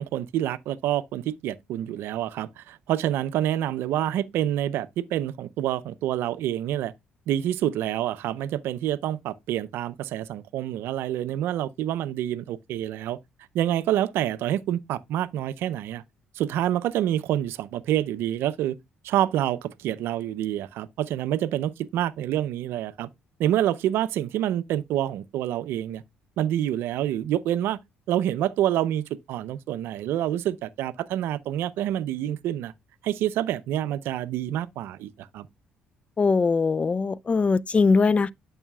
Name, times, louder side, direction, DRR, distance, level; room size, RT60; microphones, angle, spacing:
voice 1, 0.0-6.9 7.3-13.2 13.5-16.0 16.4-18.8 19.0-23.1 23.4-26.0 26.4-27.8 28.1-32.7 33.0-35.5, right 12 dB, 70° right, 0.5 m, -27 dB
voice 2, 36.2-38.3, left 4 dB, 30° left, 0.4 m, -21 dB
10.5 x 5.5 x 2.2 m
supercardioid pair, 60°, 4 cm